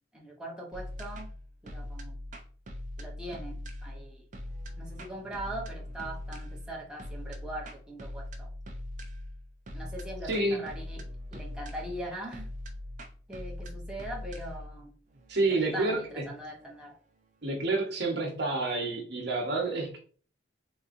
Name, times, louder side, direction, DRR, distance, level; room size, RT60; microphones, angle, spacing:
voice 1, 0.1-1.3 1.6-2.2 3.0-4.2 4.8-8.5 9.7-11.0 11.3-12.5 13.3-14.9 15.5-17.0, right 1 dB, 5° right, -2 dB, 0.7 m, -41 dB
sound 1, 0.7-17.9, left 1 dB, 40° right, 0.5 m, -42 dB
voice 2, 10.3-10.6 15.3-16.2 17.4-20.0, right 2 dB, 60° right, -1 dB, 1.0 m, -29 dB
3.9 x 2.7 x 2.5 m, 0.43 s
head